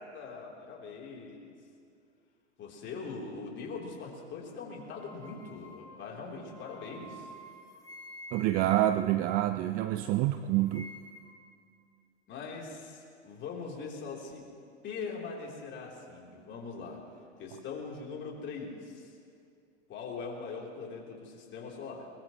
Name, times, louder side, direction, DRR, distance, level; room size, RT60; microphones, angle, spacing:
voice 1, 0.0-1.4 2.6-7.3 12.3-14.5 14.8-17.0 17.4-19.2 19.9-22.1, left 4 dB, 30° left, -1 dB, 3.5 m, -41 dB
sound 1, 4.8-10.1 10.4-11.5, equal, 10° left, 2.2 m, -51 dB
voice 2, 8.3-10.9, right 14 dB, 25° right, 11 dB, 0.4 m, -27 dB
21.5 x 21.0 x 3.1 m, 2.3 s
hypercardioid pair, 110°, 36 cm